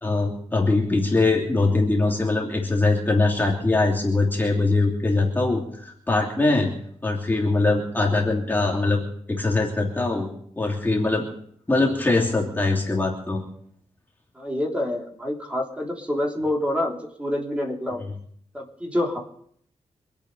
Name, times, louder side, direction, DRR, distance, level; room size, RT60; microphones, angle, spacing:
voice 1, 0.0-6.7 7.0-9.0 9.3-10.3 10.6-11.2 11.7-13.4 18.0-18.1, left 3 dB, 15° left, -2 dB, 2.9 m, -22 dB
voice 2, 14.4-18.0 18.5-19.2, left 1 dB, 10° right, -2 dB, 3.5 m, -27 dB
25.5 x 8.7 x 5.6 m, 0.66 s
wide cardioid pair, 125°, 12 cm